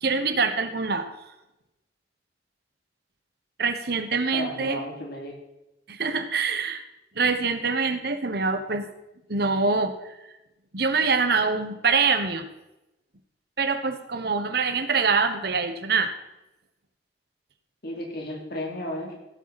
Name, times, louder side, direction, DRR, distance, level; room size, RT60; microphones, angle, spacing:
voice 1, 0.0-1.2 3.6-4.8 5.9-6.8 7.1-8.9 9.3-10.1 10.7-12.4 13.6-16.1, right 4 dB, 60° right, 9 dB, 1.2 m, -24 dB
voice 2, 4.3-5.4 17.8-19.1, left 1 dB, 60° left, 0 dB, 3.1 m, -33 dB
16.5 x 8.3 x 4.2 m, 0.94 s
head